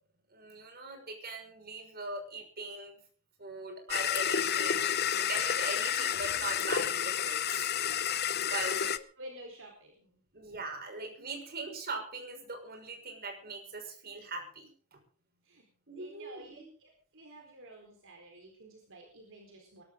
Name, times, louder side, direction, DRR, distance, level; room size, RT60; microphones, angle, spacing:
voice 1, 0.3-3.0 3.4-7.7 8.0-8.8 10.3-15.0 15.9-16.7, right 3 dB, 45° right, 4 dB, 5.9 m, -41 dB
sound 1, 3.9-9.0, left 9 dB, 45° left, 0.9 m, -30 dB
voice 2, 8.4-10.2 15.4-15.6 16.0-19.8, right 1 dB, 60° right, 1 dB, 4.3 m, -51 dB
23.5 x 13.0 x 3.9 m, 0.43 s
head